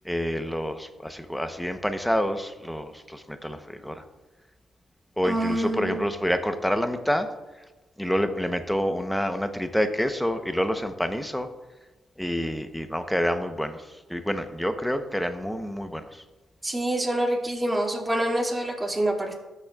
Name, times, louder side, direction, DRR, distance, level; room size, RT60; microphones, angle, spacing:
voice 1, 0.0-4.0 5.2-7.3 8.0-11.5 12.2-13.8 14.1-16.2, equal, 5° left, 8 dB, 0.9 m, -28 dB
voice 2, 5.2-6.0 16.6-19.3, right 1 dB, 15° right, -2 dB, 2.5 m, -26 dB
14.0 x 6.6 x 2.4 m, 1.1 s
supercardioid pair, 60°, 0 cm